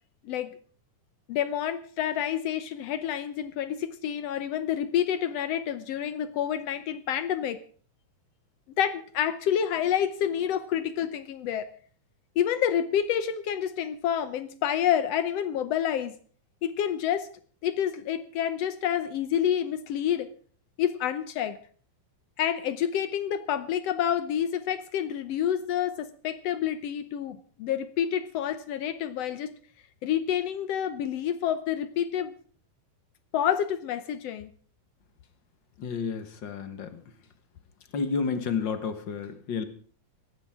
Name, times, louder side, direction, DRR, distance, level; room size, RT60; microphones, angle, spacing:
voice 1, 1.3-7.6 8.8-11.7 12.4-16.1 16.6-17.3 17.6-20.3 20.8-21.6 22.4-29.5 30.0-32.3 33.3-34.5, left 9 dB, 80° left, 13 dB, 1.4 m, -28 dB
voice 2, 35.8-36.9 37.9-39.6, left 5 dB, 50° left, 10 dB, 1.4 m, -30 dB
19.0 x 15.0 x 3.6 m, 0.44 s
omnidirectional pair, 3.9 m